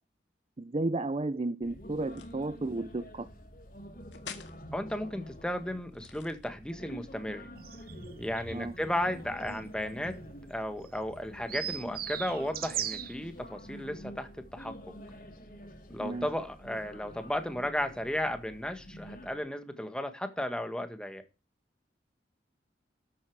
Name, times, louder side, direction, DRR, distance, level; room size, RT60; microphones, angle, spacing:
voice 1, 0.6-3.3 8.5-8.7 16.0-16.3, right 2 dB, 35° right, 0.5 m, -33 dB
sound 1, 1.6-19.4, equal, 50° left, 3.6 m, -48 dB
sound 2, 2.0-2.5 4.1-4.6 5.9-6.8, left 7 dB, 80° left, 2.0 m, -47 dB
voice 2, 4.7-7.5 8.2-10.2 10.5-14.9 15.9-21.2, left 1 dB, 5° left, 1.6 m, -34 dB
sound 3, 7.5-13.2, right 10 dB, 55° right, 1.0 m, -40 dB
13.5 x 8.5 x 4.7 m
head